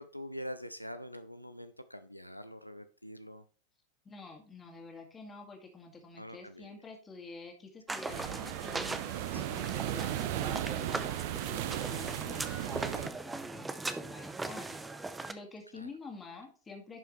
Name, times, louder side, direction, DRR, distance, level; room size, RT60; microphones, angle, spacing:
voice 1, 0.0-3.4 6.2-6.8 9.3-9.6 12.2-12.4 15.7-15.9, equal, 90° left, 10 dB, 0.4 m, -45 dB
voice 2, 4.0-11.1 11.5-17.0, left 3 dB, 15° left, 2 dB, 2.1 m, -49 dB
sound 1, 7.9-15.3, right 3 dB, 10° right, 0.6 m, -39 dB
sound 2, 8.1-13.1, right 13 dB, 50° right, 0.5 m, -36 dB
11.0 x 5.5 x 3.1 m, 0.40 s
figure-of-eight pair, 90°, 0 cm